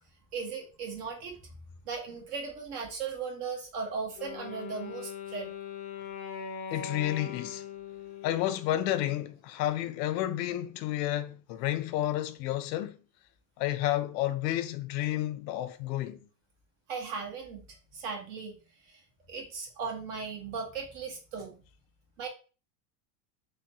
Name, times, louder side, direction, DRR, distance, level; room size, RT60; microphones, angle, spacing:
voice 1, 0.3-1.3 1.9-5.5 16.9-17.6 17.9-18.5 18.9-19.0 19.3-21.5 22.2-22.3, right 5 dB, 60° right, 1.2 m, -37 dB
Wind instrument woodwind instrument, 4.2-9.2, left 7 dB, 40° left, 0.4 m, -41 dB
voice 2, 6.7-7.6 8.2-13.0 13.6-16.2, left 13 dB, 90° left, 0.6 m, -31 dB
3.1 x 2.1 x 2.7 m
supercardioid pair, 145°, 48 cm